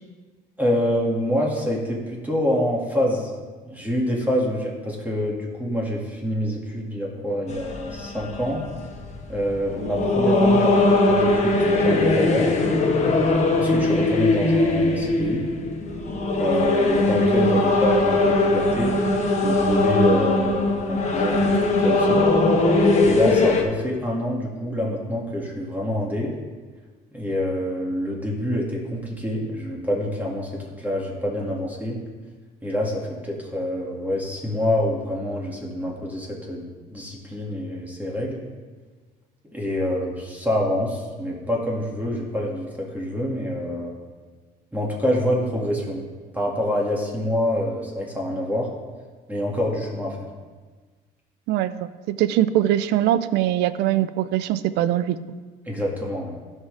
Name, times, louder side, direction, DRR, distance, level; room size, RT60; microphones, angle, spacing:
voice 1, 0.6-3.3 3.6-8.6 9.3-12.6 13.6-15.4 16.4-19.0 19.4-22.3 23.0-26.3 27.1-32.0 32.6-36.6 36.9-38.4 39.5-43.9 44.7-46.0 46.3-48.7 49.3-50.2 55.7-56.4, left 1 dB, 10° right, -3 dB, 2.1 m, -26 dB
sound 1, 7.5-23.6, left 2 dB, 40° left, 1.3 m, -20 dB
voice 2, 51.5-55.2, right 12 dB, 85° right, 14 dB, 0.5 m, -22 dB
16.0 x 5.5 x 3.4 m, 1.4 s
cardioid pair, 110°, 17 cm